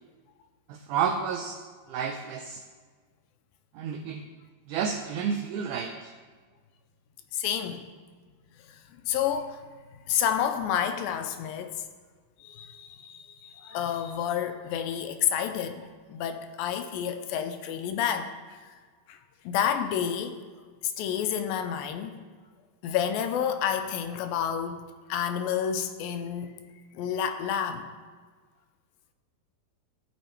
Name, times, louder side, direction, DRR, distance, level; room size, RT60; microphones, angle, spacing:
voice 1, 0.7-1.6 1.9-2.6 3.7-4.2 4.7-6.1, right 7 dB, 85° right, 4 dB, 1.7 m, -30 dB
voice 2, 7.3-7.8 9.0-9.6 10.1-11.8 12.4-15.8 16.1-18.6 19.1-19.2 19.5-20.4 20.8-22.2 22.8-24.8 25.1-26.5 26.9-27.9, left 9 dB, 80° left, 8 dB, 2.3 m, -29 dB
14.5 x 5.5 x 4.4 m, 1.5 s
omnidirectional pair, 4.3 m